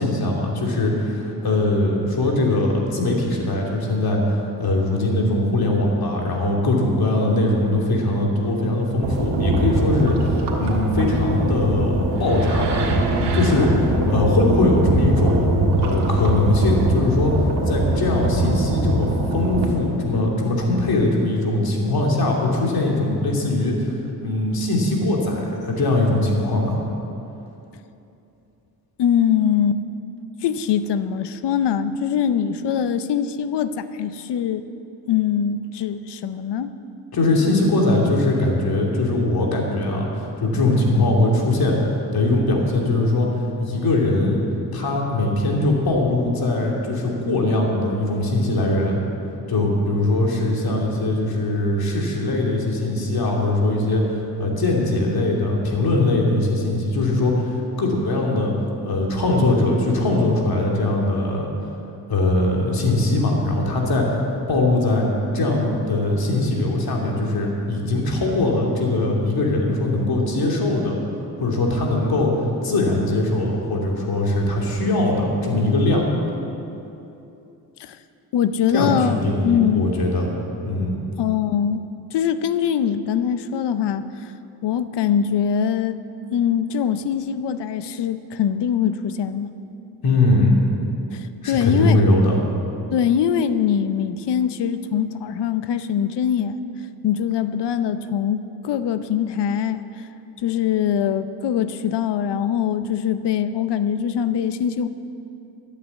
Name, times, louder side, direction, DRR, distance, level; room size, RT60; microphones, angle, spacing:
voice 1, 0.0-12.9 13.3-15.5 15.8-17.3 17.7-23.9 24.2-26.8 37.1-41.7 42.1-43.3 43.6-44.4 44.7-49.0 49.5-58.5 58.8-61.5 62.1-64.2 64.5-65.1 65.3-71.0 71.4-76.1 78.7-80.3 80.6-80.9 90.0-90.6 91.4-92.4, left 2 dB, 60° left, -1 dB, 2.6 m, -21 dB
sound 1, 9.0-19.6, right 1 dB, 90° right, 1.8 m, -22 dB
voice 2, 29.0-29.8 30.4-34.7 35.1-36.7 77.8-78.0 78.3-79.2 79.4-79.9 81.2-81.8 82.1-84.3 84.6-86.0 86.3-89.5 91.1-92.0 92.9-96.6 97.0-99.8 100.4-104.9, left 8 dB, 85° left, 12 dB, 0.7 m, -22 dB
13.0 x 8.4 x 8.0 m, 2.8 s
cardioid pair, 85°, 40 cm